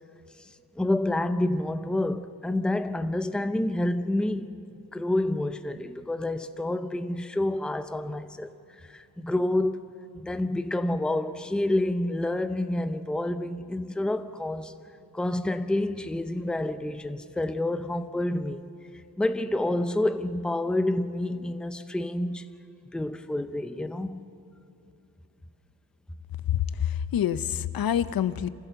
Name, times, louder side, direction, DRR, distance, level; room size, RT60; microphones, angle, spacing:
voice 1, 0.4-4.5 4.9-8.5 8.8-9.8 10.1-14.7 15.1-18.6 19.2-22.5 22.9-24.2, left 1 dB, ahead, 0.6 m, -28 dB
voice 2, 26.5-28.5, left 10 dB, 70° left, 0.7 m, -27 dB
28.0 x 15.5 x 6.8 m
wide cardioid pair, 155°, 37 cm